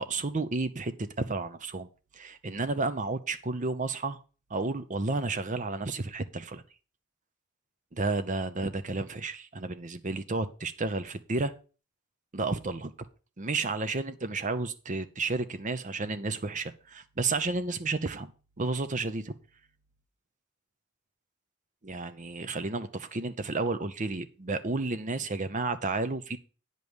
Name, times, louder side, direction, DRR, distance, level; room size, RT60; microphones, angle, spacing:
voice 1, 0.0-1.9 2.1-4.2 4.5-6.6 7.9-11.5 12.3-12.9 13.4-18.3 18.6-19.3 21.8-26.4, right 3 dB, 40° right, 0.8 m, -32 dB
9.3 x 5.4 x 6.3 m
head